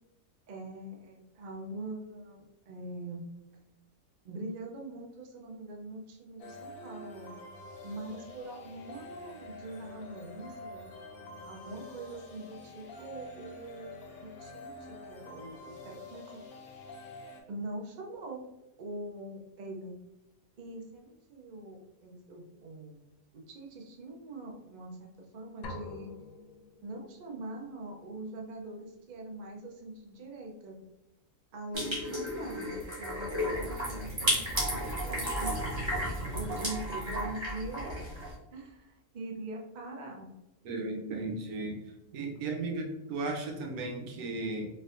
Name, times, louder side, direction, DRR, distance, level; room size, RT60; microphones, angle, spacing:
voice 1, 0.5-3.3 4.2-7.3 7.8-10.9 11.5-16.6 17.5-18.4 18.8-19.9 20.6-23.0 23.3-26.1 26.8-30.8 31.5-35.5 36.3-38.0 38.5-40.3, right 2 dB, 50° right, 0 dB, 0.5 m, -43 dB
sound 1, 6.4-17.4, left 2 dB, 55° left, 0.7 m, -47 dB
sound 2, 25.6-27.4, left 2 dB, 75° left, 1.0 m, -45 dB
sound 3, 31.7-38.3, equal, 20° right, 1.1 m, -33 dB
voice 2, 40.6-41.8 42.1-44.7, right 3 dB, 85° right, 1 dB, 1.2 m, -35 dB
4.1 x 2.6 x 2.5 m, 0.95 s
omnidirectional pair, 1.5 m